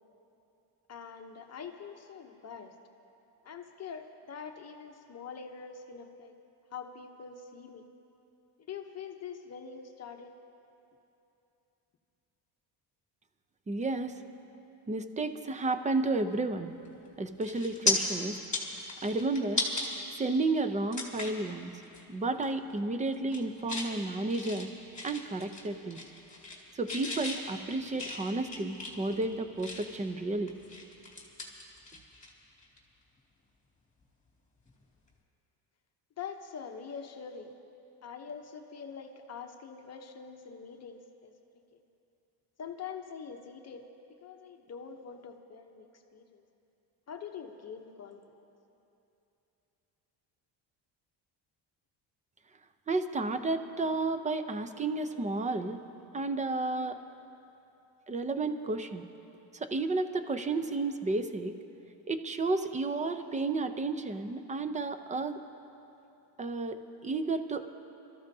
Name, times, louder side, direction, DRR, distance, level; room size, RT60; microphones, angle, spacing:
voice 1, 0.9-2.7 3.4-6.3 6.7-7.9 8.7-10.3 36.2-37.5 38.0-41.3 41.7-41.8 42.6-43.9 44.2-46.4 47.1-48.4, left 6 dB, 35° left, 4 dB, 0.9 m, -44 dB
voice 2, 13.7-14.2 14.9-16.7 17.2-18.4 19.0-19.7 20.2-21.8 22.1-24.7 25.0-26.0 26.7-30.5 52.9-55.8 56.1-57.0 58.1-59.0 59.5-61.6 62.1-65.4 66.4-67.6, right 3 dB, 15° right, 9 dB, 0.6 m, -32 dB
sound 1, 16.8-17.1 17.4-17.9 18.4-19.9 20.3-20.4 20.9-21.4 21.8-22.0 22.3-22.8 23.1-23.9 24.3-25.6 25.9-26.6 26.9-30.0 30.5-32.3 32.6-32.8 34.7-34.8, left 3 dB, 15° left, 2.5 m, -35 dB
27.0 x 14.0 x 2.8 m, 2.9 s
cardioid pair, 130°, 43 cm